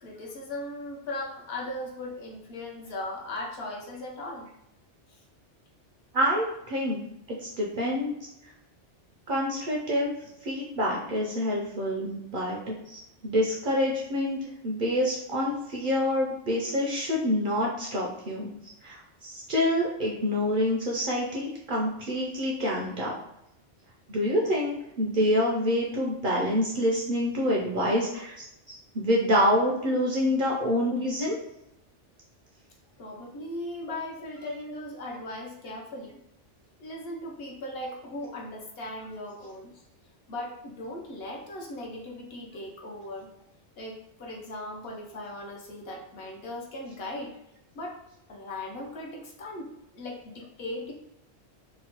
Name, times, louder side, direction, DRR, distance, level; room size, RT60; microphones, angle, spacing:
voice 1, 0.0-4.5 5.1-5.2 33.0-36.2 36.8-39.8 40.3-43.3 43.8-47.3 47.7-48.0 48.3-49.7 49.9-50.9, left 1 dB, 65° left, -1 dB, 0.8 m, -38 dB
voice 2, 6.1-7.0 7.3-8.1 9.3-10.1 10.4-18.5 18.8-23.1 24.1-28.5 28.9-31.4, equal, 60° right, -2 dB, 0.6 m, -27 dB
2.9 x 2.1 x 2.8 m, 0.84 s
omnidirectional pair, 1.2 m